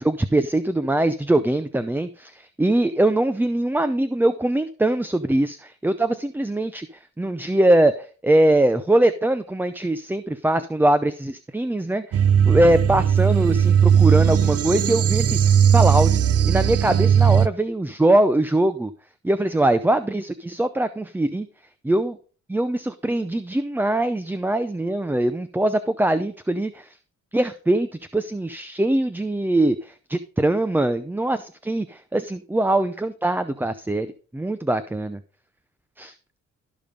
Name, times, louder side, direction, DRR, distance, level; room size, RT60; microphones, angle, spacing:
voice 1, 0.0-6.9 7.2-15.4 15.7-16.1 16.4-18.9 19.2-21.5 21.9-22.1 22.5-27.0 27.3-34.1 34.3-35.2 36.0-36.1, right 1 dB, 5° right, 12 dB, 0.6 m, -22 dB
sound 1, 12.1-17.5, right 8 dB, 50° right, 0.7 m, -18 dB
13.5 x 5.3 x 5.2 m, 0.40 s
cardioid pair, 90°, 30 cm